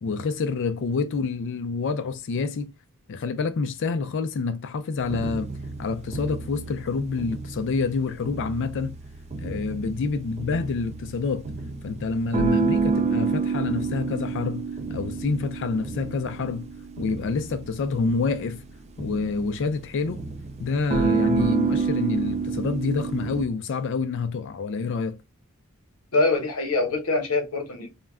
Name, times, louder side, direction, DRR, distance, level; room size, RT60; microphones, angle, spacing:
voice 1, 0.0-2.7 3.1-5.5 5.8-9.0 9.4-11.5 11.8-16.7 17.0-18.6 19.0-20.2 20.6-25.2, left 4 dB, 55° left, 0.4 m, -27 dB
sound 1, 5.0-23.5, right 5 dB, 30° right, 0.4 m, -29 dB
voice 2, 26.1-27.9, left 3 dB, 85° left, 0.9 m, -24 dB
2.2 x 2.1 x 3.4 m
head